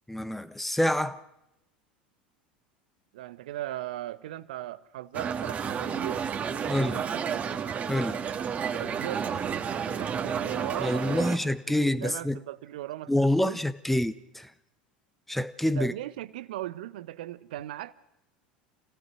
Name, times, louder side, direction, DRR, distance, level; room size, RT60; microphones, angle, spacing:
voice 1, 0.1-1.2 6.7-7.0 7.9-8.2 10.8-12.4 13.1-14.5 15.3-15.9, left 1 dB, 5° left, 1.3 m, -27 dB
voice 2, 3.1-6.3 6.8-7.4 8.7-9.4 9.9-11.4 11.7-13.6 15.7-17.9, right 14 dB, 70° right, 1.0 m, -38 dB
sound 1, 5.1-11.4, right 7 dB, 30° right, 2.3 m, -31 dB
28.5 x 17.5 x 6.3 m
hypercardioid pair, 80°, 5 cm